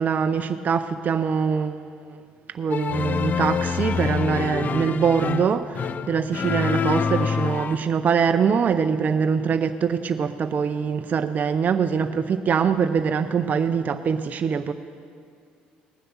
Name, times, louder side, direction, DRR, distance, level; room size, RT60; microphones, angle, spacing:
voice 1, 0.0-2.2 2.5-14.7, right 6 dB, 45° right, 8 dB, 0.6 m, -23 dB
sound 1, 2.7-7.8, left 6 dB, 50° left, 0.5 m, -26 dB
19.0 x 7.8 x 7.1 m, 2.3 s
supercardioid pair, 65°, 4 cm